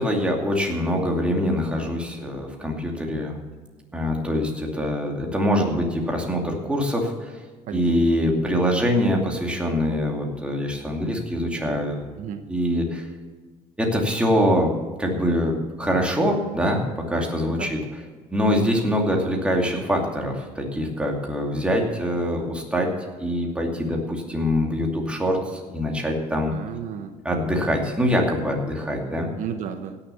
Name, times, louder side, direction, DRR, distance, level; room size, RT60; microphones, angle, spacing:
voice 1, 0.0-3.4 3.9-7.4 7.7-12.0 12.5-13.1 13.8-14.7 15.0-18.0 18.3-22.9 23.2-26.5 27.2-29.3, equal, 10° right, 0 dB, 2.5 m, -24 dB
voice 2, 7.7-8.2 12.2-12.4 17.6-17.7 26.5-27.1 29.4-30.0, right 8 dB, 65° right, 7 dB, 1.0 m, -33 dB
17.0 x 6.9 x 6.9 m, 1.4 s
cardioid pair, 125°, 14 cm